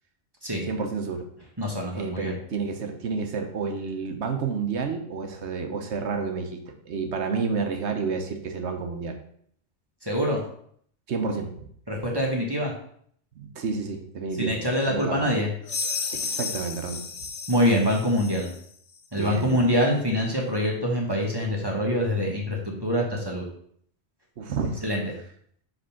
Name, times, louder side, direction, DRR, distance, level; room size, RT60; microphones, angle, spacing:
voice 1, 0.7-1.3 1.9-6.6 6.9-9.2 11.1-11.5 13.3-14.5 14.9-15.3 16.2-17.1 19.2-19.6 24.4-24.8, right 5 dB, 75° right, 5 dB, 1.1 m, -30 dB
voice 2, 1.6-2.3 10.0-10.4 11.9-12.7 14.4-15.5 17.5-18.5 19.1-23.4 24.8-25.0, equal, 20° right, -1 dB, 1.2 m, -25 dB
sound 1, 15.7-18.6, left 4 dB, 80° left, 1.1 m, -33 dB
5.2 x 3.6 x 5.7 m, 0.64 s
omnidirectional pair, 1.2 m